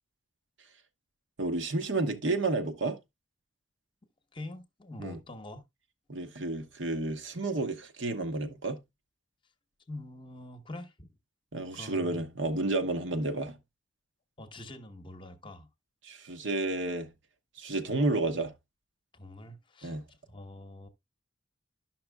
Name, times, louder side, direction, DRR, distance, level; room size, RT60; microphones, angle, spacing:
voice 1, 1.4-3.0 5.0-5.2 6.1-8.8 11.5-13.6 16.0-17.1 17.6-18.5 19.8-20.0, right 2 dB, 75° right, 1.0 m, -31 dB
voice 2, 4.3-5.6 9.9-11.1 11.7-12.2 14.4-15.7 19.1-20.9, left 1 dB, 25° left, 0.8 m, -45 dB
11.5 x 5.8 x 2.2 m
head